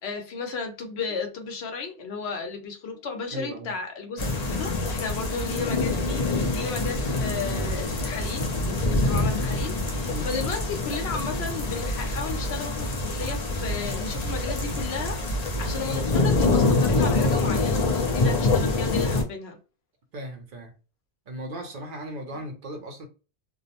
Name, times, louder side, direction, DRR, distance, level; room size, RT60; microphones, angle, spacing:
voice 1, 0.0-19.6, left 4 dB, 80° left, 1.0 m, -34 dB
voice 2, 3.3-3.7 6.1-6.3 6.6-6.7 8.7-8.8 10.1-10.3 13.2-13.3 20.1-20.7 21.3-23.1, right 1 dB, 60° right, 0.8 m, -37 dB
sound 1, 4.2-19.2, left 2 dB, 45° left, 0.7 m, -25 dB
2.5 x 2.0 x 2.8 m
omnidirectional pair, 1.0 m